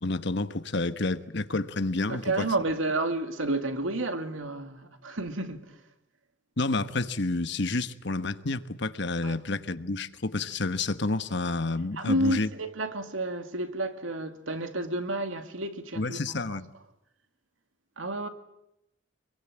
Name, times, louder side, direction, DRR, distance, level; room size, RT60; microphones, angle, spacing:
voice 1, 0.0-2.2 6.6-12.5 16.0-16.6, left 3 dB, 60° left, 1.3 m, -29 dB
voice 2, 2.1-5.8 9.2-9.4 12.0-16.2 16.5-16.6 18.0-18.3, right 2 dB, 85° right, 2.5 m, -30 dB
26.0 x 22.5 x 8.9 m
head